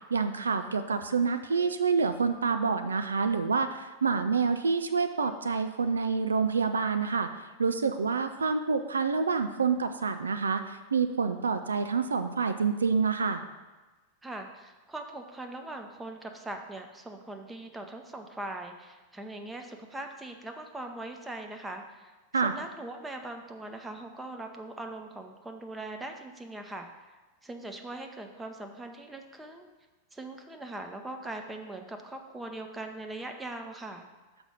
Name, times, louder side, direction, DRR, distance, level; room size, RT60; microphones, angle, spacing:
voice 1, 0.1-13.4 22.3-22.5, right 5 dB, 75° right, 9 dB, 0.4 m, -27 dB
voice 2, 14.2-22.2 22.4-26.9 27.4-29.7 30.1-34.1, right 2 dB, 10° right, 4 dB, 0.8 m, -41 dB
6.2 x 5.1 x 5.5 m, 1.2 s
figure-of-eight pair, 90°, 0 cm